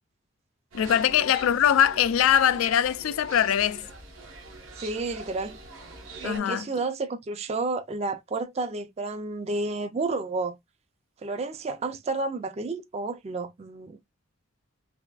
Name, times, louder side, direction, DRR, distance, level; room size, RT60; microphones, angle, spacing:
voice 1, 0.7-3.9 6.2-6.7, left 9 dB, 85° left, 0.3 m, -22 dB
sound 1, 0.7-6.4, right 2 dB, 85° right, 1.1 m, -44 dB
voice 2, 4.8-5.6 6.2-10.6 11.2-14.0, right 3 dB, 30° right, 0.4 m, -31 dB
3.4 x 2.2 x 2.3 m
head